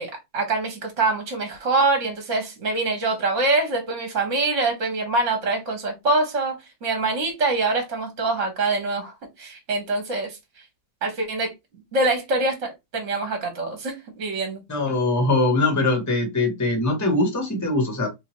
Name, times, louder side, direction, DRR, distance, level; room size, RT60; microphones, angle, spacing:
voice 1, 0.0-9.1 9.4-10.4 11.0-11.5 11.9-14.6, right 3 dB, 50° right, 1.1 m, -24 dB
voice 2, 14.7-18.1, left 2 dB, 15° left, 0.6 m, -22 dB
3.7 x 2.7 x 3.0 m
omnidirectional pair, 2.1 m